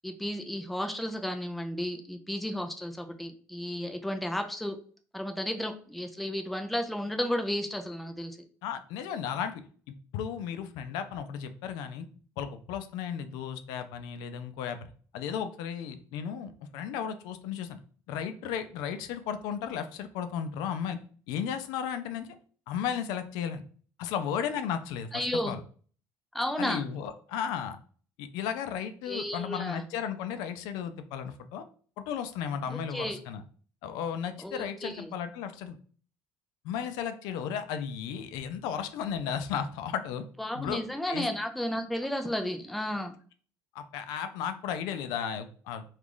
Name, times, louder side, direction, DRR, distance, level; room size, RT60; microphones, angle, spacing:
voice 1, 0.0-4.8 5.1-8.4 25.1-25.5 26.3-26.8 29.1-29.8 32.7-33.2 34.4-35.1 40.4-43.1, left 1 dB, ahead, 5 dB, 0.3 m, -33 dB
voice 2, 8.6-9.5 9.9-12.1 12.4-14.8 15.1-17.8 18.1-21.0 21.3-22.4 22.7-23.6 24.0-25.6 26.6-27.8 28.2-31.6 32.0-33.4 33.8-35.8 36.6-40.2 40.5-40.8 41.1-41.3 43.7-45.8, left 8 dB, 85° left, 9 dB, 0.4 m, -34 dB
3.0 x 2.4 x 3.7 m, 0.43 s
cardioid pair, 165°, 7 cm